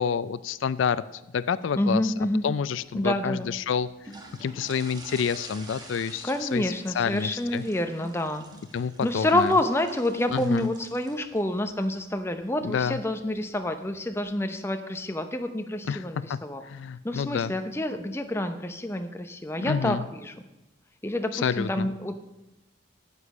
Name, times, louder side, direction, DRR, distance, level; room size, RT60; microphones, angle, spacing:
voice 1, 0.0-2.1 2.4-4.1 4.4-7.6 8.7-9.5 10.3-10.7 12.6-13.0 15.9-16.4 16.6-17.5 19.6-20.0 21.3-21.9, left 6 dB, 80° left, 16 dB, 0.4 m, -28 dB
voice 2, 1.8-2.4 2.9-3.5 6.2-8.4 9.0-16.6 17.0-20.4 21.0-22.2, left 1 dB, 15° left, 7 dB, 0.7 m, -28 dB
sound 1, 1.8-14.2, right 2 dB, 20° right, 1.4 m, -49 dB
9.6 x 8.3 x 6.0 m, 0.99 s
head